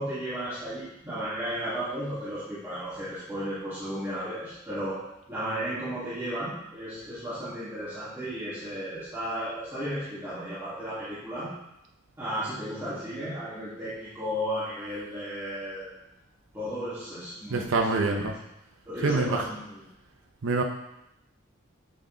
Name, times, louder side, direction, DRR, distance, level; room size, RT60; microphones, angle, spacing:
voice 1, 0.0-5.0 5.3-11.5 12.2-15.9 16.5-18.3 18.9-19.9, equal, 15° right, -14 dB, 1.9 m, -34 dB
voice 2, 17.5-18.3 19.0-19.5 20.4-20.6, right 3 dB, 80° right, 2 dB, 0.7 m, -25 dB
7.6 x 3.8 x 3.8 m, 0.85 s
head